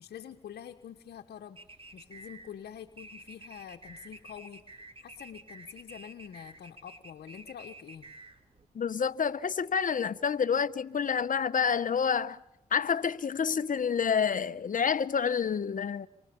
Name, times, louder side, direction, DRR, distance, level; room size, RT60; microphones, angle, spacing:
voice 1, 0.0-1.6 1.9-8.1, left 9 dB, 70° left, 1.4 m, -46 dB
sound 1, 1.6-8.6, right 2 dB, 35° right, 3.4 m, -50 dB
voice 2, 8.7-12.4 12.7-16.1, left 6 dB, 55° left, 1.1 m, -28 dB
28.0 x 24.0 x 7.1 m
supercardioid pair, 50°, 17 cm